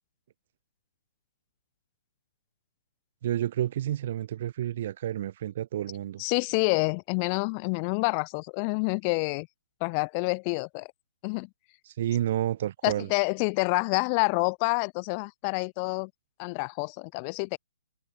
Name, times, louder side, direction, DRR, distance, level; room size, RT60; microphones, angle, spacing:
voice 1, 3.2-6.2 11.8-13.1, right 12 dB, 50° right, 1.4 m, -30 dB
voice 2, 6.2-9.5 9.8-10.9 11.2-11.5 12.8-16.1 16.4-17.6, left 37 dB, 30° left, 1.5 m, -28 dB
hypercardioid pair, 150°, 0 cm